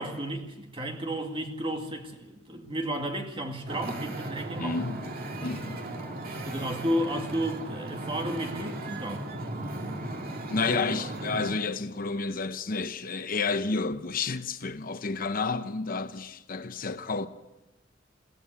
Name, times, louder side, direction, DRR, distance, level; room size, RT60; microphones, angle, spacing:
voice 1, 0.0-5.0 6.5-9.3, right 1 dB, 30° right, 2.3 m, -33 dB
Wind / Ocean, 3.7-11.5, right 1 dB, 50° right, 2.2 m, -36 dB
voice 2, 4.6-5.0 5.4-5.8 10.5-17.3, left 4 dB, 50° left, 0.8 m, -30 dB
21.5 x 16.0 x 8.3 m
head